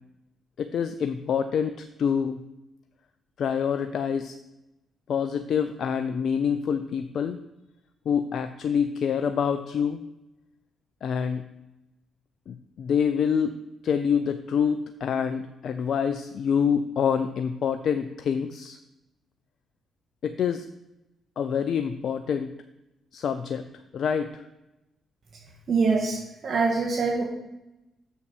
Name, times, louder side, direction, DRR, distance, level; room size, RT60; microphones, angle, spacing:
voice 1, 0.6-2.4 3.4-4.4 5.1-7.4 8.1-10.1 11.0-11.5 12.5-13.5 13.8-18.8 20.2-20.7 21.4-22.5 23.1-23.6 23.9-24.5, left 7 dB, 65° left, 9 dB, 0.5 m, -26 dB
voice 2, 25.7-27.2, right 4 dB, 55° right, -1 dB, 1.6 m, -24 dB
6.8 x 5.5 x 6.1 m, 0.96 s
hypercardioid pair, 50°, 0 cm